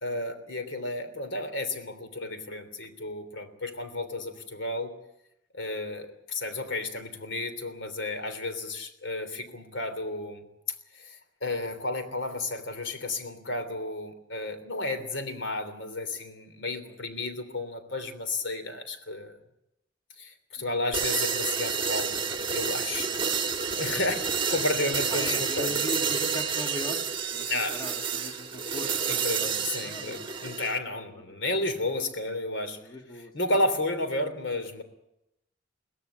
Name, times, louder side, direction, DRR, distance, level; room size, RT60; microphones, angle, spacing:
voice 1, 0.0-4.9 5.5-10.4 10.9-19.4 20.2-23.1 23.8-25.8 27.5-27.8 29.1-32.8 33.1-34.8, left 2 dB, 70° left, 9 dB, 3.3 m, -32 dB
sound 1, 20.9-30.8, right 6 dB, 25° right, 1.7 m, -29 dB
voice 2, 25.1-27.0 27.3-27.5 27.7-29.5 29.8-30.2 31.3-31.4 32.8-33.3, left 1 dB, 20° left, 3 dB, 1.8 m, -39 dB
23.0 x 17.0 x 8.7 m, 0.83 s
head